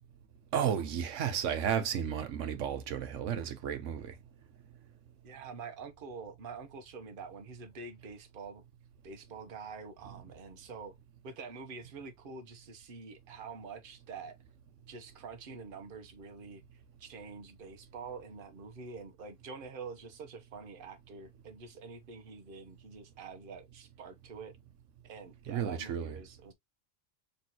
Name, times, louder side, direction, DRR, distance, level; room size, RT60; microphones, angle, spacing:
voice 1, 0.5-4.1 25.5-26.2, right 8 dB, 90° right, 1.1 m, -33 dB
voice 2, 5.2-8.6 9.0-10.9 11.2-14.4 14.9-24.5 25.0-26.5, right 4 dB, 50° right, 1.0 m, -46 dB
4.2 x 3.1 x 2.9 m
omnidirectional pair, 1.3 m